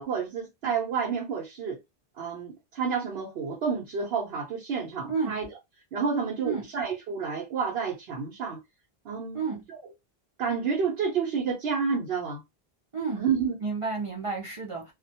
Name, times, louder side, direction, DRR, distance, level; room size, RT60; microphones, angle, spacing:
voice 1, 0.0-1.8 2.2-5.5 5.9-8.6 9.0-9.4 9.7-9.8 10.4-12.4 13.2-13.6, right 6 dB, 80° right, 0.9 m, -29 dB
voice 2, 5.1-5.4 6.4-6.6 9.3-9.6 12.9-13.2 13.6-14.9, right 4 dB, 45° right, 0.4 m, -31 dB
2.3 x 2.1 x 2.7 m
omnidirectional pair, 1.0 m